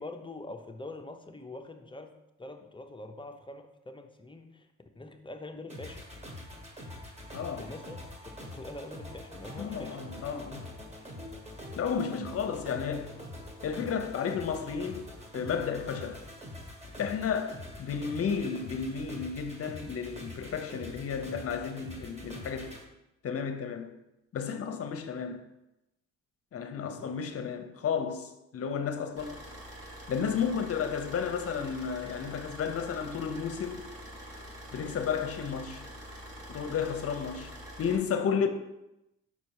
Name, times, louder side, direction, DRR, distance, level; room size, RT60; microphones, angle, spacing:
voice 1, 0.0-4.7 5.0-6.1 7.6-10.0 26.8-27.1, left 2 dB, 15° left, 0.6 m, -44 dB
sound 1, 5.7-22.8, left 1 dB, 20° right, 1.5 m, -45 dB
voice 2, 7.3-7.7 9.6-10.7 11.8-13.2 13.6-15.1 15.3-16.2 17.0-22.7 23.2-23.9 24.3-25.4 26.5-29.3 30.1-33.8 34.7-35.8 36.5-37.5 37.8-38.5, left 6 dB, 50° left, 0.8 m, -32 dB
Car / Idling, 29.2-38.0, equal, 50° right, 1.6 m, -45 dB
5.6 x 4.2 x 4.7 m
cardioid pair, 90°, 30 cm